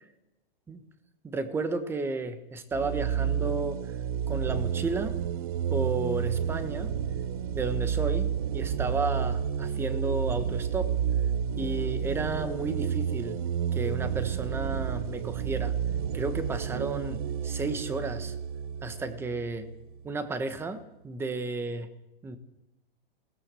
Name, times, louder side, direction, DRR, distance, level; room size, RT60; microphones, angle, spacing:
voice 1, 1.2-3.8 4.3-5.2 5.7-6.9 7.5-10.9 11.6-13.4 13.7-15.7 16.1-18.3 18.8-19.7 20.0-21.9 22.2-22.4, right 3 dB, 10° right, 11 dB, 1.1 m, -32 dB
sound 1, 2.7-20.1, right 8 dB, 35° right, 0.8 m, -30 dB
20.0 x 18.0 x 7.6 m, 0.91 s
hypercardioid pair, 165°, 30 cm